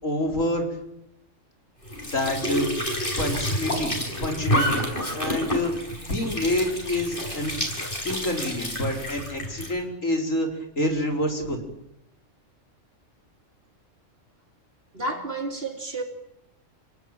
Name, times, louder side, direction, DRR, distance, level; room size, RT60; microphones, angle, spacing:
voice 1, 0.0-0.6 2.1-2.7 3.2-3.9 4.2-4.8 5.1-7.5 8.0-10.5 10.8-11.6, left 1 dB, 80° left, 5.1 m, -27 dB
Squeak / Sink (filling or washing) / Trickle dribble, 1.8-9.7, equal, 40° left, 6.5 m, -29 dB
voice 2, 14.9-16.0, right 2 dB, 45° right, 3.5 m, -30 dB
29.0 x 18.5 x 9.2 m
omnidirectional pair, 1.3 m